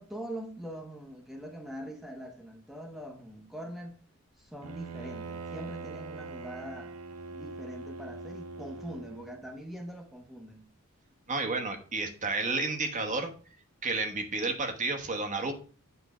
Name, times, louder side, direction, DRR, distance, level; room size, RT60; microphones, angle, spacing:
voice 1, 0.0-4.0 4.4-6.9 7.3-10.7, equal, ahead, 1.0 m, -43 dB
Bowed string instrument, 4.6-9.5, right 3 dB, 75° right, 0.6 m, -42 dB
voice 2, 11.3-13.3 13.8-15.5, right 3 dB, 35° right, 1.3 m, -31 dB
8.2 x 3.8 x 4.9 m
head